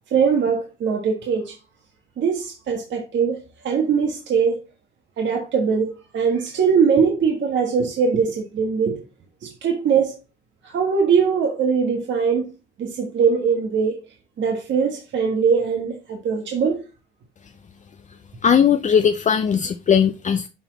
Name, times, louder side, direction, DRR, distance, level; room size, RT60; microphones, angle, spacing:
voice 1, 0.1-1.6 2.2-3.4 3.6-4.6 5.2-9.0 9.4-10.1 10.6-12.5 12.8-14.0 14.4-16.8, right 6 dB, 65° right, 1.5 m, -21 dB
voice 2, 18.4-20.5, left 7 dB, 40° left, 0.5 m, -18 dB
10.0 x 3.9 x 4.0 m
cardioid pair, 90°, 20 cm